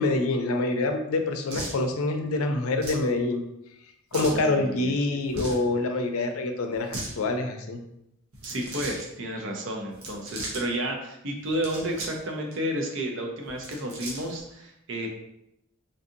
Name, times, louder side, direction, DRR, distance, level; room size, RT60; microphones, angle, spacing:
voice 1, 0.0-3.4 4.1-7.8, left 2 dB, 85° left, 6 dB, 0.5 m, -26 dB
sound 1, 1.5-1.8 2.8-3.1 4.1-4.4 5.3-5.6 6.7-7.1 8.3-9.0 9.9-10.6 11.4-12.2 12.5-12.6 13.5-14.4, right 1 dB, 80° right, 1.0 m, -37 dB
voice 2, 4.1-4.9 8.4-15.1, right 1 dB, 60° right, 2 dB, 0.6 m, -31 dB
3.9 x 2.7 x 2.5 m, 0.81 s
head